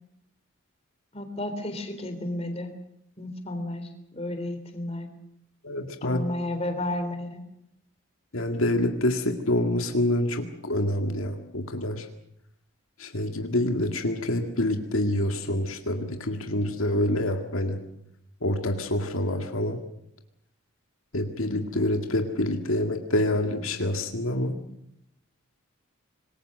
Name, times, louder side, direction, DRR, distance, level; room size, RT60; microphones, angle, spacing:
voice 1, 1.1-2.7 3.2-5.1 6.0-7.4, left 1 dB, 30° left, 6 dB, 3.6 m, -32 dB
voice 2, 5.6-6.2 8.3-12.1 13.0-17.8 18.4-19.8 21.1-24.6, left 1 dB, 80° left, 5 dB, 2.0 m, -27 dB
26.0 x 21.0 x 6.6 m, 0.76 s
head